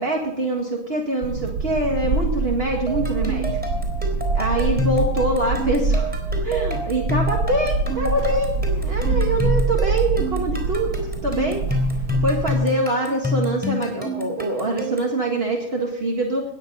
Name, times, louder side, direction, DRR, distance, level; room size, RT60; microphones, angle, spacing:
voice 1, 0.0-3.6 4.3-6.1 6.4-10.9 11.2-11.7 12.2-16.4, right 1 dB, 55° right, 0 dB, 2.0 m, -24 dB
sound 1, 1.2-12.5, right 3 dB, 90° right, 1.4 m, -25 dB
sound 2, 2.9-15.2, left 1 dB, 5° right, 3.8 m, -28 dB
19.5 x 8.4 x 5.4 m, 0.73 s
omnidirectional pair, 1.3 m